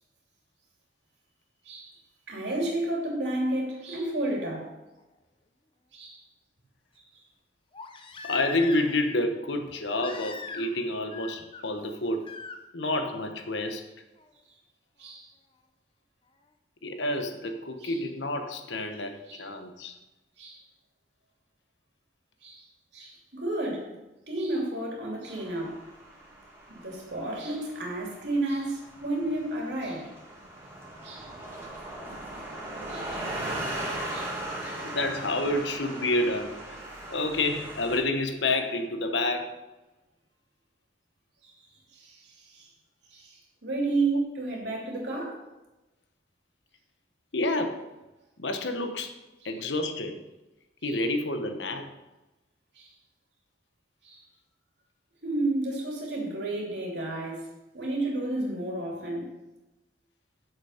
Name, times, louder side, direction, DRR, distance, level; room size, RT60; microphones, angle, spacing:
voice 1, 1.6-2.0 2.3-4.7 5.9-6.2 15.0-15.3 17.8-18.0 19.3-19.4 20.4-20.6 22.4-22.7 22.9-23.9 24.3-25.8 26.7-30.1 31.0-31.3 32.9-33.3 34.1-34.8 41.4-41.5 41.9-42.7 43.1-45.4 49.4-49.5 50.8-51.0 52.7-52.9 54.0-54.2 55.2-57.5 57.7-59.3, right 2 dB, 70° right, 2.8 m, -32 dB
Crying sobbing, 5.0-5.1 7.7-9.1 10.0-10.8 11.1-11.6 12.2-12.6 14.2-14.3, left 4 dB, 30° left, 0.7 m, -41 dB
voice 2, 8.2-12.3 12.7-13.9 16.8-20.0 34.8-36.6 37.1-39.6 44.1-44.2 47.3-47.8 48.4-49.1 49.4-50.2 50.8-51.9, left 2 dB, 80° left, 1.0 m, -29 dB
sound 1, 25.3-38.0, right 1 dB, 15° right, 2.0 m, -38 dB
8.1 x 7.1 x 5.7 m
head